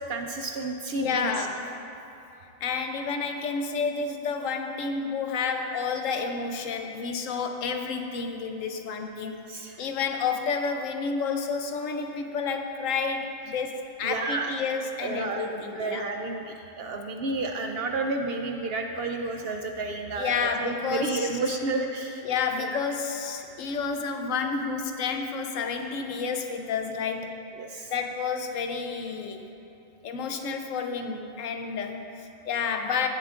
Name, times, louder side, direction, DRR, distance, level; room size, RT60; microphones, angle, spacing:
voice 1, 0.1-1.5 9.5-9.9 14.0-14.5 15.0-22.2 22.6-22.8 27.6-27.9, right 3 dB, 65° right, 3 dB, 0.6 m, -31 dB
voice 2, 1.0-1.7 2.6-9.4 9.8-16.1 20.2-21.3 22.2-27.4 27.9-29.4 30.0-33.1, left 5 dB, 75° left, 5 dB, 1.0 m, -30 dB
16.5 x 7.1 x 2.5 m, 2.8 s
omnidirectional pair, 1.4 m